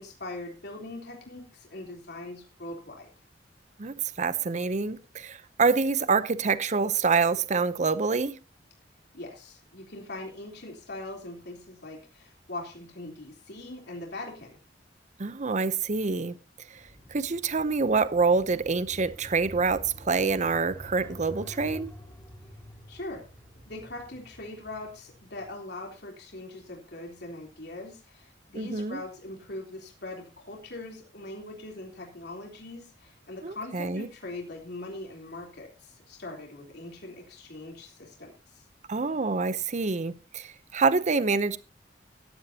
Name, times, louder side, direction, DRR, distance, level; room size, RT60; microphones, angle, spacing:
voice 1, 0.0-3.1 9.1-14.6 22.9-23.3 23.7-38.7, left 2 dB, 65° left, 3.6 m, -41 dB
voice 2, 3.8-8.4 15.2-16.4 16.7-21.9 28.5-29.0 33.4-34.1 38.9-41.6, right 4 dB, 40° right, 0.7 m, -26 dB
sound 1, 16.7-25.5, equal, 15° left, 4.0 m, -47 dB
16.5 x 12.0 x 2.8 m
head